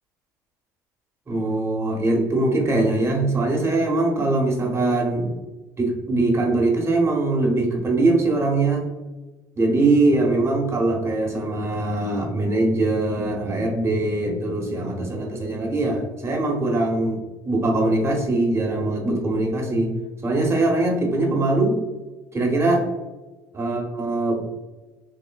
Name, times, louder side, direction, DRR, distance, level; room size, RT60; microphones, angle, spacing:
voice 1, 1.3-5.3 5.8-8.9 9.6-17.2 17.4-19.9 20.2-21.8 22.3-22.8 23.5-24.4, right 2 dB, 25° right, 0 dB, 1.1 m, -22 dB
3.6 x 3.0 x 2.3 m, 1.2 s
hypercardioid pair, 65°, 10 cm